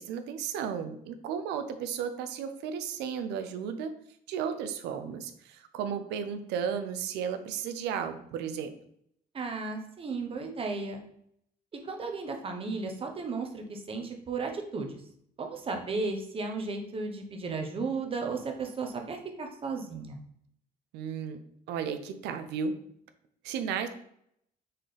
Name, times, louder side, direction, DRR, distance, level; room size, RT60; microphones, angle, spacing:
voice 1, 0.0-3.9 4.3-8.7 20.9-21.4 21.7-22.7 23.4-23.9, right 7 dB, 85° right, 9 dB, 0.5 m, -34 dB
voice 2, 9.3-11.0 11.8-15.0 15.4-20.2, right 4 dB, 35° right, 4 dB, 0.9 m, -34 dB
4.3 x 3.7 x 3.3 m, 0.71 s
cardioid pair, 110°, 17 cm